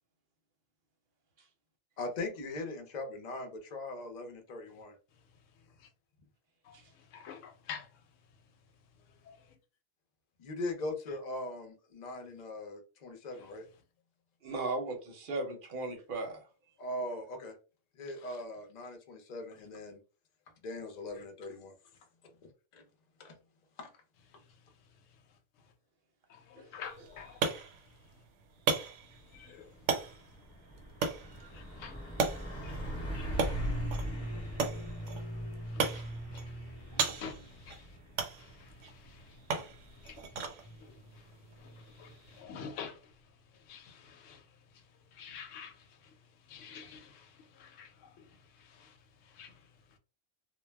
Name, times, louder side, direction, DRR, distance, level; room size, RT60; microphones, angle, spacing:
voice 1, 2.0-5.0 10.4-13.6 16.8-17.6 17.9-20.0 20.6-21.7 22.7-22.8 23.2-23.4 23.8-23.9, left 2 dB, 45° left, 0.6 m, -40 dB
voice 2, 6.6-8.0 9.1-9.6 13.4-13.5 21.1-21.2 24.4-24.5 25.1-25.2 25.6-25.7 26.3-27.5 29.3-29.8 31.0-32.1 32.6-33.7 34.3-34.6 34.9-35.3 35.6-38.0 38.4-39.4 39.8-50.0, left 6 dB, 75° left, 0.9 m, -50 dB
voice 3, 14.4-16.4 26.6-26.7 36.9-37.0, right 2 dB, 50° right, 0.7 m, -36 dB
sound 1, 26.8-42.4, right 5 dB, 75° right, 0.9 m, -38 dB
Truck, 29.2-29.5 29.8-42.4, equal, 15° left, 0.8 m, -41 dB
2.2 x 2.1 x 3.2 m
omnidirectional pair, 1.3 m